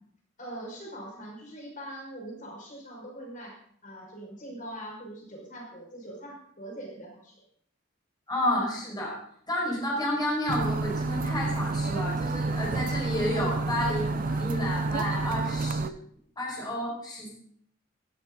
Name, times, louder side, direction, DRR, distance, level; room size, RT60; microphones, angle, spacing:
voice 1, 0.4-3.6 3.8-7.4, right 1 dB, 40° left, -1 dB, 5.6 m, -42 dB
voice 2, 8.3-9.2 9.5-15.9 16.4-17.3, left 1 dB, 20° left, -4 dB, 5.3 m, -30 dB
sound 1, 10.5-15.9, right 3 dB, 45° right, 0.5 m, -29 dB
16.5 x 15.0 x 4.0 m, 0.64 s
head